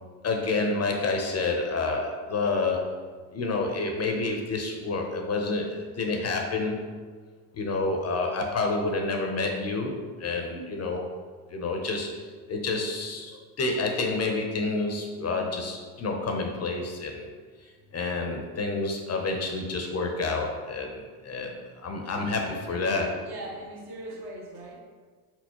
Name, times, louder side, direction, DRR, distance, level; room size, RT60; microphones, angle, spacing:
voice 1, 0.2-3.0 3.3-6.9 7.5-11.0 11.5-17.3 17.9-23.2, left 3 dB, 35° left, 3 dB, 0.6 m, -29 dB
voice 2, 22.6-24.8, right 1 dB, 55° right, -1 dB, 1.2 m, -41 dB
4.4 x 4.0 x 2.9 m, 1.5 s
supercardioid pair, 85°, 47 cm